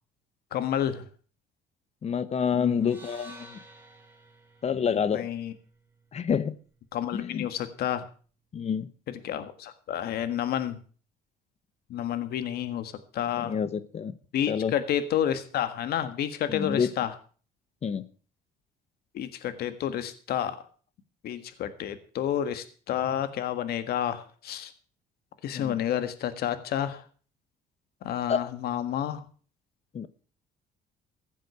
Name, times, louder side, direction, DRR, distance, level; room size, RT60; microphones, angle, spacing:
voice 1, 0.5-1.0 2.5-2.9 5.1-5.5 6.9-8.0 9.2-10.8 11.9-13.5 14.3-17.1 19.1-20.6 21.2-24.7 25.4-27.0 28.0-29.2, left 10 dB, 70° left, 11 dB, 1.6 m, -30 dB
voice 2, 2.0-3.6 4.6-5.3 6.1-6.5 7.1-7.5 8.5-8.9 13.3-14.1 14.5-14.7 16.5-16.9 17.8-18.1 25.5-25.8 28.3-28.5 29.9-30.1, left 7 dB, 40° left, 15 dB, 1.0 m, -28 dB
sound 1, 2.8-7.0, right 2 dB, 10° right, 3.4 m, -52 dB
15.0 x 7.7 x 6.9 m, 0.41 s
cardioid pair, 110°, 17 cm